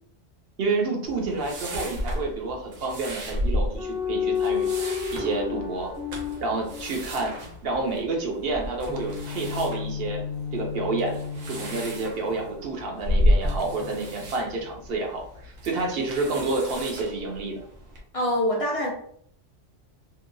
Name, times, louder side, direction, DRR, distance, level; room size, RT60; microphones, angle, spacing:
voice 1, 0.6-4.7 5.1-5.9 6.4-7.3 7.6-10.2 10.5-11.2 11.5-17.6, right 3 dB, 60° right, 1 dB, 0.8 m, -29 dB
sound 1, 1.1-18.0, equal, 90° right, 1.0 m, -32 dB
sound 2, 3.8-7.5 8.9-12.6 13.4-14.7, left 6 dB, 5° right, 0.5 m, -32 dB
voice 2, 18.1-18.9, left 1 dB, 60° left, -4 dB, 0.3 m, -24 dB
2.7 x 2.2 x 2.5 m, 0.65 s
omnidirectional pair, 1.2 m